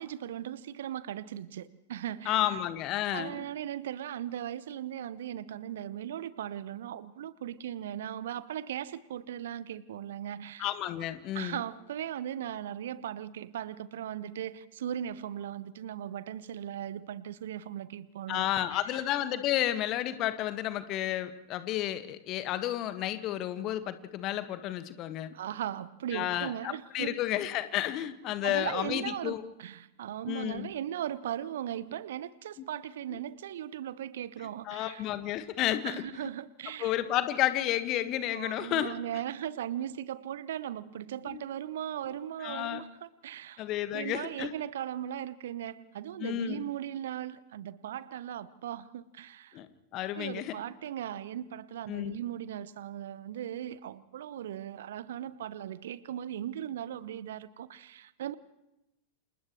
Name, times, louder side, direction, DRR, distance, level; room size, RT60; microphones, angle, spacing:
voice 1, 0.0-2.4 3.1-10.7 11.3-19.0 25.3-27.2 28.4-35.0 35.8-36.9 38.3-43.6 43.9-49.6 50.1-58.3, right 11 dB, 60° right, 18 dB, 0.8 m, -38 dB
voice 2, 2.2-3.4 10.6-11.6 18.3-25.3 26.1-29.4 30.3-30.7 34.7-36.2 36.8-38.9 41.2-41.4 42.4-42.8 43.6-44.5 46.2-46.7 49.5-49.7 49.9-50.5 51.9-52.2, left 13 dB, 35° left, 11 dB, 1.5 m, -31 dB
29.5 x 28.0 x 3.1 m, 0.89 s
figure-of-eight pair, 90°, 0 cm